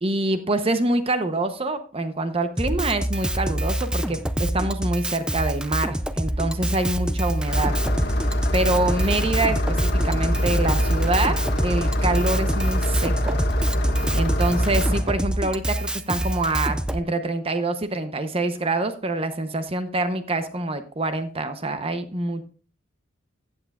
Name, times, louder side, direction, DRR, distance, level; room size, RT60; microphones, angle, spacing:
voice 1, 0.0-7.7 8.5-13.4 14.1-22.5, right 2 dB, 30° right, 9 dB, 0.8 m, -26 dB
Drum kit, 2.6-17.0, right 1 dB, 5° right, 0.4 m, -26 dB
Engine starting, 7.5-15.0, equal, 60° left, 1.6 m, -24 dB
15.0 x 8.1 x 2.4 m, 0.38 s
head